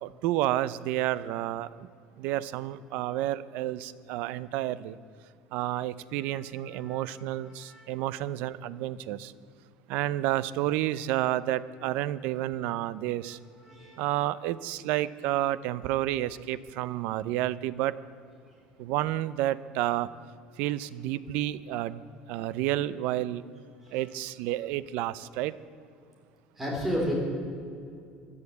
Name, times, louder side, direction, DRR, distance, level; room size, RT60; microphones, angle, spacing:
voice 1, 0.0-1.9 2.2-5.0 5.5-9.3 9.9-13.4 14.0-18.0 18.8-20.1 20.6-22.0 22.3-23.4 23.9-25.5, right 14 dB, 65° right, 18 dB, 0.6 m, -30 dB
voice 2, 6.6-7.9 13.6-14.0 23.8-24.0 26.6-27.1, equal, 10° right, -1 dB, 3.8 m, -34 dB
15.5 x 11.0 x 8.0 m, 2.4 s
cardioid pair, 175°, 3 cm